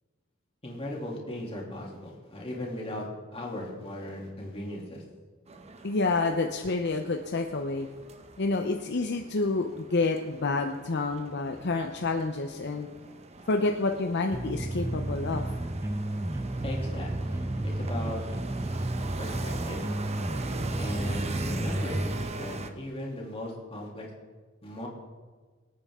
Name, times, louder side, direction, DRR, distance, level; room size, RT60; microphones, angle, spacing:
voice 1, 0.6-3.1 3.3-5.0 16.6-18.2 18.7-18.8 19.2-19.8 20.7-22.1 22.3-24.1 24.6-24.9, left 1 dB, 30° left, -2 dB, 2.9 m, -38 dB
sound 1, 5.5-22.7, right 2 dB, 30° right, 0.9 m, -41 dB
voice 2, 5.8-7.9 8.4-12.9 13.5-15.4, left 3 dB, 60° left, 5 dB, 0.7 m, -28 dB
sound 2, 14.3-22.3, right 1 dB, 15° right, 0.4 m, -32 dB
24.0 x 8.8 x 3.7 m, 1.4 s
head